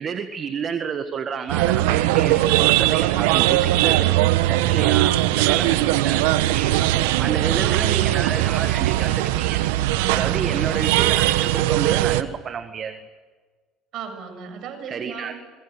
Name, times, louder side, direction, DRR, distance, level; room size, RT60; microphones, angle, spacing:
voice 1, 0.0-5.1 5.4-5.7 6.0-6.2 6.5-6.7 7.2-9.6 10.1-13.0 14.9-15.3, right 7 dB, 45° right, 8 dB, 1.8 m, -30 dB
sound 1, 1.5-12.2, right 15 dB, 80° right, 1.1 m, -20 dB
voice 2, 4.6-6.4 6.8-7.9 9.9-10.6 13.9-15.4, right 6 dB, 60° right, 6 dB, 7.5 m, -36 dB
26.5 x 22.5 x 8.1 m, 1.4 s
supercardioid pair, 80°, 0 cm